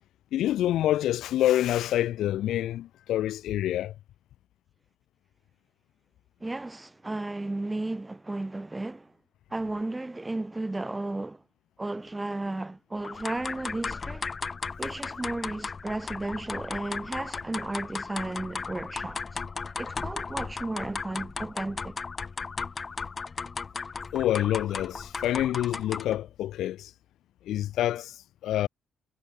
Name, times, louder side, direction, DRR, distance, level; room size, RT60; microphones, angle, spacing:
voice 1, 0.3-3.9 24.1-26.9 27.5-28.7, left 13 dB, 80° left, 0.5 m, -27 dB
voice 2, 6.4-9.1 9.5-11.4 11.8-14.3 14.8-19.2 19.8-22.0, right 2 dB, 15° right, 2.5 m, -34 dB
sound 1, 13.0-26.2, left 4 dB, 35° left, 0.7 m, -36 dB
cardioid pair, 90°, 0 cm